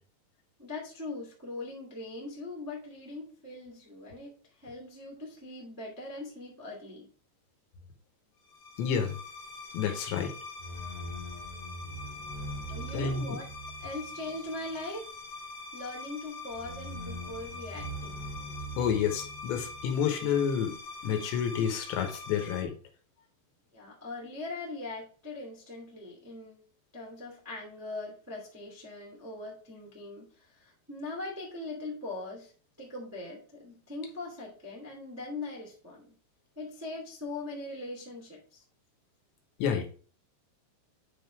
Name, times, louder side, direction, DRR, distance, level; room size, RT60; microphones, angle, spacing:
voice 1, 0.6-7.1 12.7-13.5 13.8-15.0 15.7-18.2 23.7-26.6 26.9-32.5 32.8-36.1 36.5-38.6, left 2 dB, 10° right, -3 dB, 0.8 m, -41 dB
sound 1, 8.5-22.6, left 1 dB, 45° left, 2.1 m, -42 dB
voice 2, 8.8-9.2 9.7-10.3 12.9-13.4 18.8-20.7 21.0-22.7 39.6-39.9, left 7 dB, 80° left, 5 dB, 3.4 m, -29 dB
9.0 x 3.6 x 4.5 m, 0.42 s
omnidirectional pair, 5.1 m